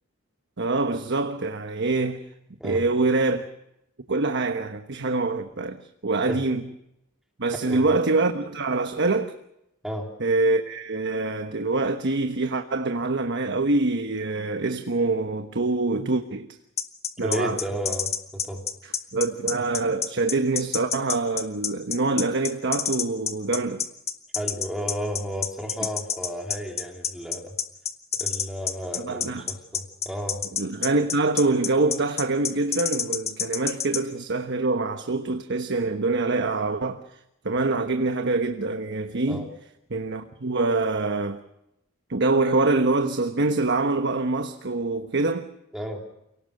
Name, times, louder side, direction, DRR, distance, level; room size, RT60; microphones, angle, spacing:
voice 1, 0.6-2.2 2.6-3.5 4.1-6.7 7.4-9.3 10.2-16.5 17.2-17.6 19.1-23.8 29.0-29.4 30.6-37.0 37.4-39.5 39.9-41.4 42.1-45.5, right 3 dB, 60° right, 1.2 m, -25 dB
sound 1, 16.8-34.0, left 7 dB, 30° left, 1.5 m, -28 dB
voice 2, 17.2-18.7 24.3-27.5 28.2-30.4 39.3-39.5 45.7-46.0, equal, 5° right, 3.3 m, -33 dB
29.0 x 18.0 x 6.6 m
head